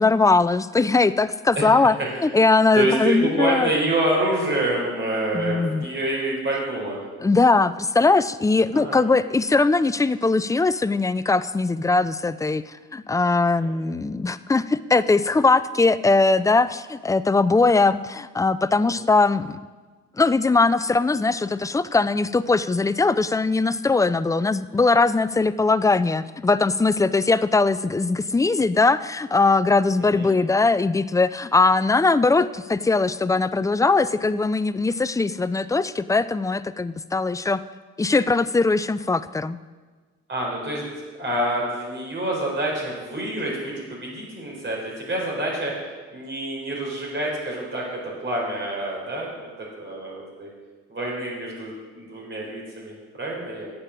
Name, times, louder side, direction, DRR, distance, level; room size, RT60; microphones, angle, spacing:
voice 1, 0.0-3.7 5.3-5.9 7.2-19.6 20.2-37.6 38.0-39.6, left 3 dB, 10° left, 15 dB, 0.3 m, -20 dB
voice 2, 2.7-7.0 8.7-9.1 13.6-13.7 18.8-19.0 30.1-30.3 40.3-45.7 46.1-49.5 49.8-50.5 50.9-53.7, right 1 dB, 40° right, -3 dB, 4.2 m, -27 dB
8.7 x 8.3 x 7.1 m, 1.4 s
cardioid pair, 90°, 30 cm